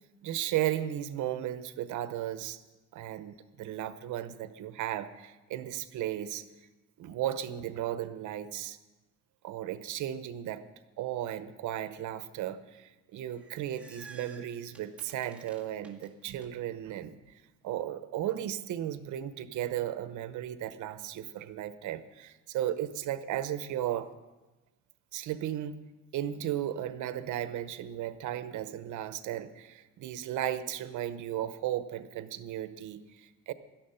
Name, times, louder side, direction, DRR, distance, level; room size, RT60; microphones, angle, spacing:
voice 1, 0.2-2.6 2.9-6.5 7.0-8.8 9.4-10.6 11.0-17.2 17.6-24.1 25.1-25.8 26.1-33.5, right 12 dB, 65° right, 12 dB, 0.9 m, -35 dB
sound 1, 13.2-16.5, right 4 dB, 5° right, 1.8 m, -53 dB
17.5 x 12.5 x 5.7 m, 1.1 s
cardioid pair, 170°, 32 cm